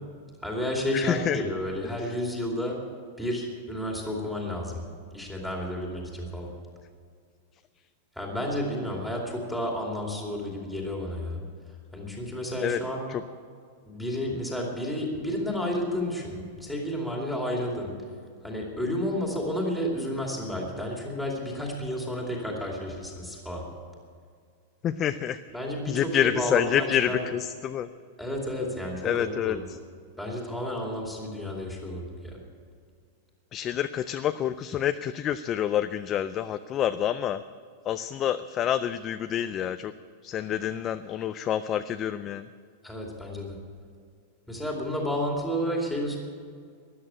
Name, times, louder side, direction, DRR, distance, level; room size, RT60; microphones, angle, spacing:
voice 1, 0.4-2.8 3.2-4.8 5.1-6.5 8.2-11.4 11.9-13.1 13.9-17.9 18.4-23.7 25.5-27.3 28.2-29.6 30.2-32.4 42.8-43.5 44.5-46.2, equal, ahead, -2 dB, 2.6 m, -31 dB
voice 2, 0.9-1.4 12.6-12.8 13.1-13.2 24.8-25.4 25.9-27.9 29.0-29.8 33.5-37.4 37.9-39.9 40.2-42.5, left 10 dB, 25° left, 10 dB, 0.4 m, -28 dB
13.0 x 11.0 x 8.7 m, 2.1 s
supercardioid pair, 165°, 0 cm